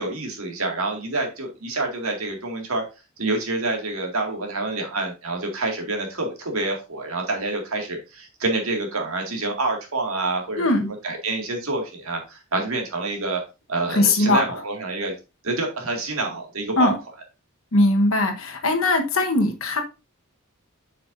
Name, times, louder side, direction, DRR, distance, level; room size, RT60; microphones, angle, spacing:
voice 1, 0.0-2.8 3.2-13.4 13.7-15.1 15.4-16.9, right 2 dB, 85° right, 2.1 m, -27 dB
voice 2, 10.6-10.9 13.9-14.4 16.8-17.0 17.7-19.8, left 2 dB, 70° left, 1.2 m, -20 dB
7.5 x 5.8 x 2.6 m
head